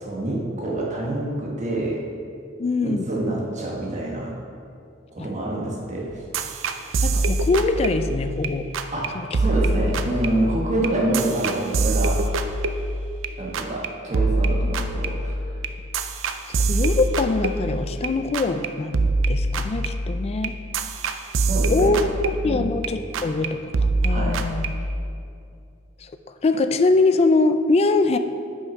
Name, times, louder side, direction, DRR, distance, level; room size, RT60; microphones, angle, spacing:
voice 1, 0.0-2.0 2.8-4.3 5.1-6.2 8.9-12.2 13.4-15.3 21.5-21.9 22.4-22.7 24.1-24.4, right 1 dB, 40° right, -2 dB, 1.2 m, -27 dB
voice 2, 2.6-3.0 5.2-5.3 7.0-8.7 9.1-9.3 16.7-20.6 21.7-24.7 26.0-26.1 26.4-28.2, left 3 dB, 30° left, 9 dB, 0.3 m, -23 dB
sound 1, 6.1-8.5 8.7-9.1 9.3-13.3 13.5-13.9 14.1-18.1 18.3-18.7 18.9-22.9 23.1-23.5 23.7-25.0, right 2 dB, 80° right, 0.4 m, -24 dB
5.8 x 5.8 x 5.2 m, 2.5 s
head